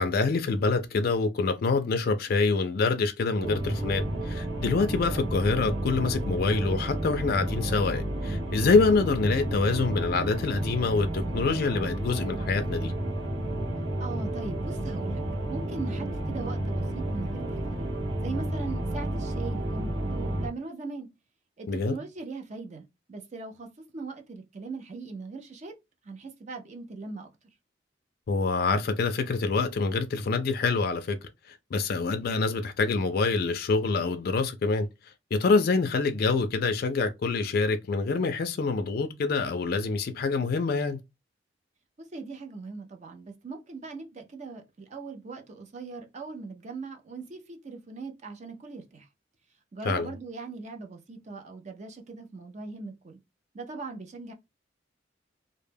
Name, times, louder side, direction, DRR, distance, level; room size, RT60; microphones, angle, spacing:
voice 1, 0.0-12.9 21.7-22.0 28.3-31.2 31.5-41.0 49.8-50.1, left 4 dB, 50° left, 0.3 m, -26 dB
sound 1, 3.4-20.5, right 1 dB, 70° right, 0.7 m, -31 dB
voice 2, 14.0-15.2 15.5-17.9 18.2-21.1 21.6-25.8 26.0-27.3 42.0-49.1 49.7-53.2 53.5-54.3, right 4 dB, 40° right, 0.4 m, -40 dB
2.1 x 2.0 x 3.2 m
head